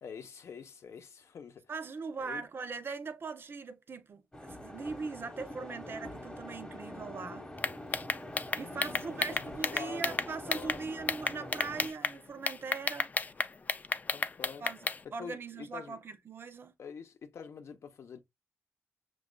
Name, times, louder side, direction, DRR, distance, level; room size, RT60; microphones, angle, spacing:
voice 1, 0.0-1.7 2.2-2.5 8.6-10.8 14.1-14.6 15.2-16.0 16.8-18.2, left 6 dB, 80° left, 0.8 m, -46 dB
voice 2, 1.7-7.5 8.6-13.1 14.6-14.8 15.1-16.7, right 4 dB, 55° right, 0.5 m, -40 dB
sound 1, 4.3-11.9, left 1 dB, 15° left, 0.9 m, -45 dB
sound 2, 7.6-10.8 11.1-12.1 12.5-15.0, left 4 dB, 35° left, 0.4 m, -31 dB
6.2 x 2.3 x 2.2 m
wide cardioid pair, 115°, 5 cm